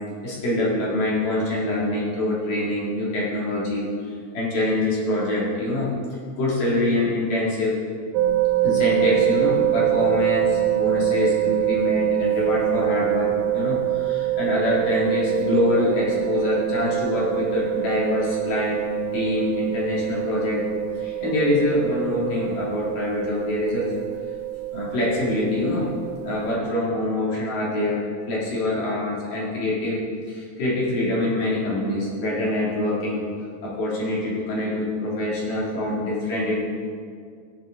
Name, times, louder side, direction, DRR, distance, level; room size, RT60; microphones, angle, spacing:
voice 1, 0.2-3.9 4.3-5.9 6.4-7.7 8.6-18.8 19.1-20.6 21.0-23.9 24.7-25.9 26.2-30.0 30.3-33.2 33.6-36.6, left 1 dB, 50° left, -6 dB, 3.4 m, -24 dB
sound 1, 8.1-26.6, right 15 dB, 85° right, 3.1 m, -25 dB
15.0 x 10.5 x 3.7 m, 2.1 s
omnidirectional pair, 5.6 m